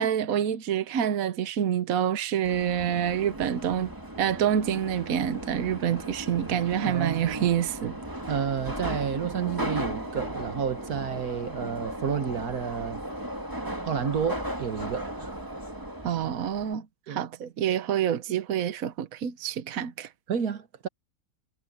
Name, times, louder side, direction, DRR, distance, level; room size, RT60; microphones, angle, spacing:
voice 1, 0.0-3.9 4.2-8.0 16.0-20.1, right 9 dB, 70° right, 1.3 m, -27 dB
Subway metro underground, 2.4-16.7, right 1 dB, 15° right, 2.2 m, -36 dB
voice 2, 6.8-7.5 8.3-13.0 13.8-15.3 17.1-17.2 20.3-20.9, right 7 dB, 90° right, 1.9 m, -30 dB
omnidirectional pair, 1.5 m